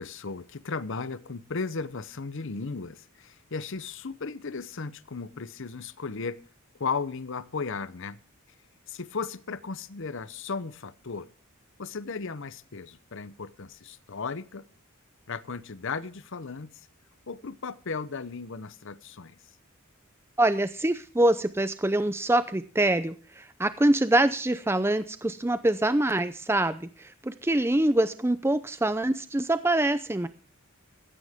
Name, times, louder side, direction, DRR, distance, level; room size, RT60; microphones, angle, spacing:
voice 1, 0.0-6.4 6.8-8.2 8.9-11.3 11.8-14.6 15.3-16.7 17.3-19.4, left 4 dB, 60° left, 0.8 m, -35 dB
voice 2, 20.4-30.3, right 1 dB, 10° right, 0.6 m, -25 dB
16.0 x 14.5 x 3.6 m
head